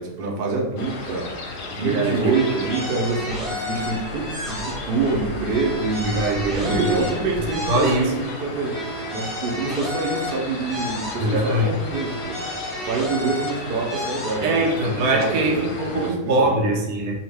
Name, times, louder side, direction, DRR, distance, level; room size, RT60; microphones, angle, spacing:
voice 1, 0.0-6.1 6.6-12.4 12.8-16.6, right 3 dB, 60° right, -2 dB, 0.5 m, -26 dB
sound 1, 0.8-16.1, left 2 dB, 65° left, 0.9 m, -35 dB
voice 2, 1.8-2.7 6.0-7.0 7.7-8.1 11.2-11.8 14.4-17.2, right 2 dB, 75° right, 0 dB, 1.1 m, -22 dB
sound 2, 2.3-5.2 5.4-8.4 8.6-11.6 11.8-14.8, left 1 dB, ahead, 0.8 m, -33 dB
2.8 x 2.4 x 3.3 m, 1.0 s
omnidirectional pair, 1.6 m